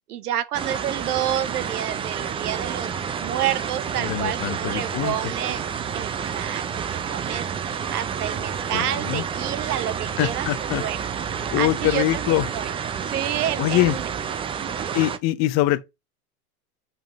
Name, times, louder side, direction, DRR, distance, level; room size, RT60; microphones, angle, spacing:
voice 1, 0.1-2.9 3.2-5.6 5.9-6.6 6.9-11.0 11.3-12.7 13.0-14.1 14.6-14.9, right 11 dB, 85° right, 0.9 m, -29 dB
sound 1, 0.5-15.2, right 7 dB, 15° right, 0.3 m, -29 dB
voice 2, 4.0-5.2 8.7-9.2 10.2-10.8 11.5-12.5 13.6-14.0 14.9-15.8, left 15 dB, 35° left, 0.5 m, -23 dB
5.3 x 3.6 x 5.8 m
hypercardioid pair, 105°, 45 cm